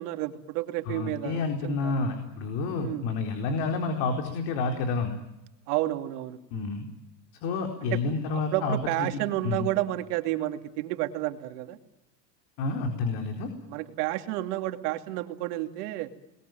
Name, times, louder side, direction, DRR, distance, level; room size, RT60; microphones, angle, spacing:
voice 1, 0.0-1.9 2.7-3.1 5.7-6.4 7.9-8.0 8.3-11.8 13.7-16.1, right 16 dB, 65° right, 6 dB, 2.7 m, -31 dB
voice 2, 0.9-5.1 6.5-6.9 7.4-9.1 9.4-9.6 12.6-13.5, left 4 dB, 55° left, 4 dB, 4.3 m, -29 dB
29.5 x 21.0 x 9.3 m, 0.95 s
supercardioid pair, 130°, 49 cm